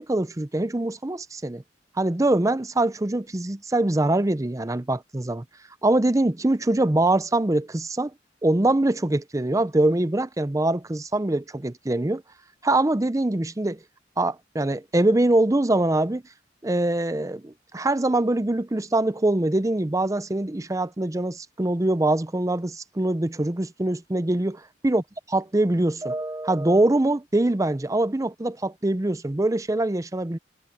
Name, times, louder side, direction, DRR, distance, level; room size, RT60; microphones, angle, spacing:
voice 1, 0.0-1.6 2.0-5.4 5.8-8.1 8.4-12.2 12.6-13.8 14.2-16.2 16.6-24.5 24.8-25.0 25.3-30.4, right 2 dB, 20° right, 0.6 m, -23 dB
head